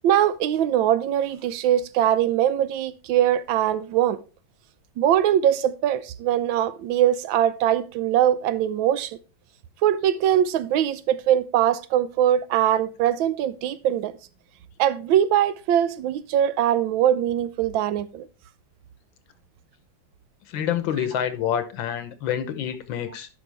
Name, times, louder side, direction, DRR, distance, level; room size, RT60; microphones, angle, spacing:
voice 1, 0.0-4.2 5.0-9.2 9.8-14.1 14.8-18.3, right 10 dB, 90° right, 1.4 m, -22 dB
voice 2, 20.5-23.3, left 9 dB, 85° left, 1.6 m, -27 dB
11.5 x 5.3 x 3.3 m
omnidirectional pair, 2.1 m